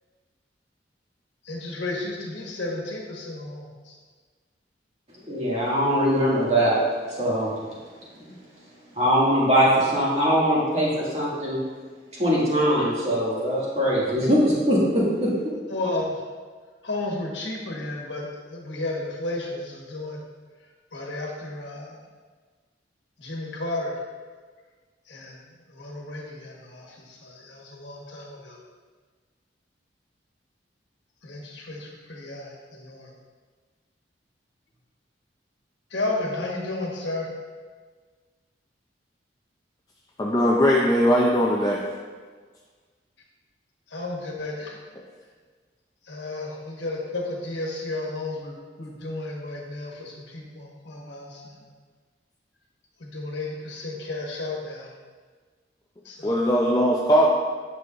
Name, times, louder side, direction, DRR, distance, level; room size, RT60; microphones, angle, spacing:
voice 1, 1.4-4.0 15.7-16.2 16.8-20.2 20.9-22.1 23.2-24.0 25.1-25.4 25.7-28.6 31.2-33.1 35.9-37.3 43.9-44.8 46.0-51.6 53.0-54.9 56.0-56.4, left 2 dB, 75° left, -2 dB, 1.3 m, -33 dB
voice 2, 5.2-6.8 7.1-7.5 8.2-8.3 8.9-11.6 12.2-15.3, equal, 35° right, -7 dB, 2.0 m, -22 dB
voice 3, 40.2-41.8 56.2-57.3, equal, 20° left, -3 dB, 0.5 m, -20 dB
9.4 x 6.2 x 2.5 m, 1.5 s
head